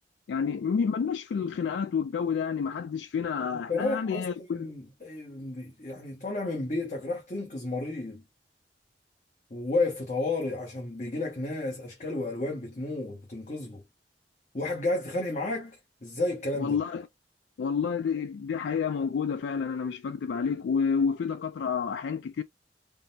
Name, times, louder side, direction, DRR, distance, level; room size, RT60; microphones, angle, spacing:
voice 1, 0.3-4.7 16.6-17.0 17.6-22.4, left 6 dB, 80° left, 0.3 m, -29 dB
voice 2, 3.7-8.2 9.5-13.8 14.5-16.8, left 2 dB, 40° left, 0.9 m, -32 dB
3.6 x 2.0 x 2.7 m
head